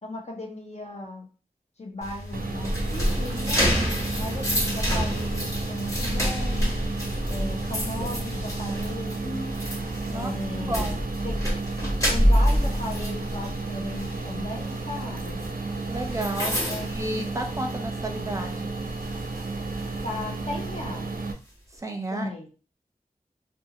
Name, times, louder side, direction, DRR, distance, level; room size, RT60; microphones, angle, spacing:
voice 1, 0.0-1.3 1.8-3.7 4.2-6.7 7.3-9.4 10.1-10.9 11.2-11.4 12.1-15.4 16.7-16.9 20.0-21.1 22.1-22.5, left 2 dB, 50° left, 1 dB, 0.8 m, -36 dB
sound 1, 2.0-17.9 18.3-18.5 19.0-20.7, equal, 20° left, 1.4 m, -28 dB
sound 2, 2.3-21.3, right 3 dB, 85° right, 0.4 m, -33 dB
voice 2, 4.1-4.5 10.1-11.0 15.9-18.7 21.7-22.3, right 1 dB, 20° right, 3 dB, 0.6 m, -33 dB
2.6 x 2.4 x 2.8 m, 0.35 s
wide cardioid pair, 50°, 15 cm